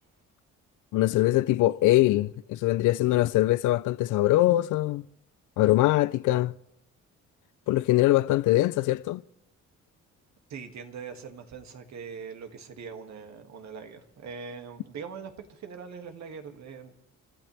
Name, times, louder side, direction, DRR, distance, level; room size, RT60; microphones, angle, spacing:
voice 1, 0.9-5.0 5.6-6.5 7.7-9.2, left 16 dB, 80° left, 0.5 m, -22 dB
voice 2, 10.5-17.0, right 6 dB, 65° right, 2.3 m, -42 dB
29.5 x 13.5 x 3.4 m
cardioid pair, 90°, 30 cm